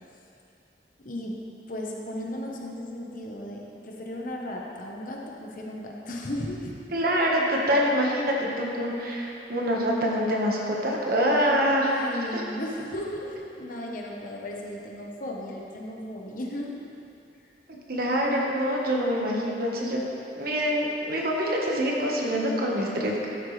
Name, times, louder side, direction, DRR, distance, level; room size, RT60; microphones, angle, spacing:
voice 1, 1.0-1.4 1.7-6.8 11.8-16.8 17.4-17.5, left 1 dB, 50° left, -1 dB, 1.2 m, -35 dB
voice 2, 6.9-11.9 12.3-12.4 17.9-20.0 20.3-23.3, equal, 55° right, -2 dB, 1.5 m, -25 dB
12.5 x 9.1 x 3.4 m, 2.7 s
head